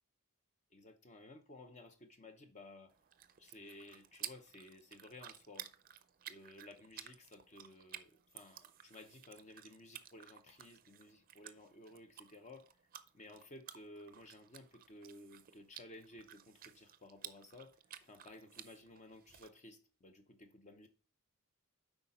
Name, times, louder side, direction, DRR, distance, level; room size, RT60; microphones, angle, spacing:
voice 1, 0.7-2.9 3.4-5.7 6.3-12.9 13.1-20.9, left 2 dB, 30° left, 0.7 m, -56 dB
sound 1, 2.9-19.5, right 11 dB, 40° right, 0.5 m, -54 dB
8.1 x 4.9 x 4.2 m
head